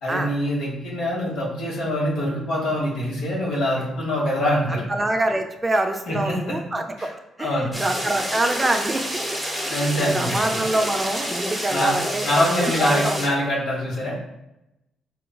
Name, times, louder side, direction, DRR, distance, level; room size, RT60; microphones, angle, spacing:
voice 1, 0.0-4.8 6.1-6.5 7.0-7.1 7.4-7.7 9.7-10.5 11.7-11.9 12.2-14.1, equal, 80° left, -4 dB, 1.0 m, -24 dB
voice 2, 4.7-9.1 9.6-13.2, right 1 dB, 20° right, 5 dB, 0.4 m, -25 dB
sound 1, 7.7-13.3, equal, 5° right, 0.8 m, -28 dB
4.1 x 2.3 x 2.3 m, 0.88 s
cardioid pair, 90°, 0 cm